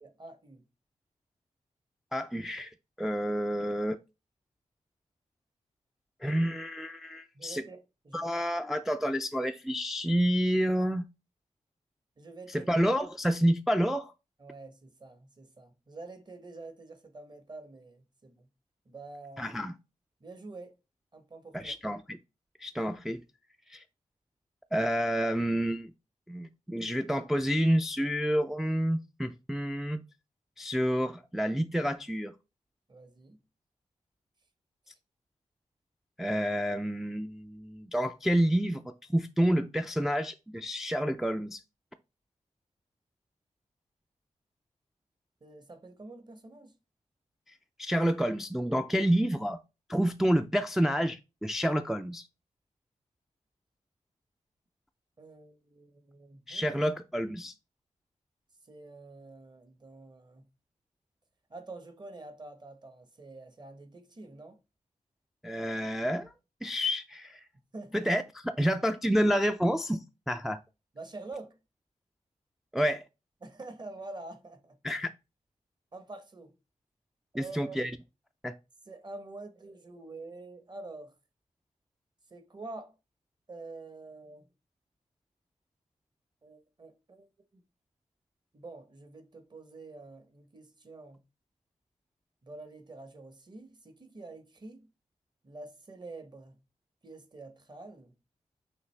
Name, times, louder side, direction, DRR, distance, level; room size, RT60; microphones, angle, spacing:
voice 1, 0.0-0.6 7.3-8.3 12.2-12.7 14.4-18.5 18.9-19.5 20.2-20.8 21.1-21.7 32.9-33.4 45.4-46.7 55.2-56.8 58.6-60.5 61.5-64.6 67.7-68.1 70.9-71.6 73.4-74.8 75.9-76.5 77.3-77.8 78.9-81.1 82.3-83.0 83.5-84.5 86.4-87.6 88.5-91.2 92.4-94.9 95.4-96.6 97.0-98.2, right 2 dB, 35° right, 1.0 m, -47 dB
voice 2, 2.1-4.0 6.2-7.6 8.1-11.1 12.5-14.1 19.4-19.7 21.5-22.2 22.6-23.2 23.7-23.8 24.7-25.9 26.3-30.0 30.6-32.3 36.2-41.6 47.8-49.6 49.9-52.3 56.5-57.5 65.4-66.3 66.6-67.4 67.9-70.6 72.7-73.0 74.8-75.1 77.3-77.9 78.4-78.5, equal, 5° right, 0.3 m, -29 dB
5.8 x 2.7 x 3.2 m
cardioid pair, 70°, 13 cm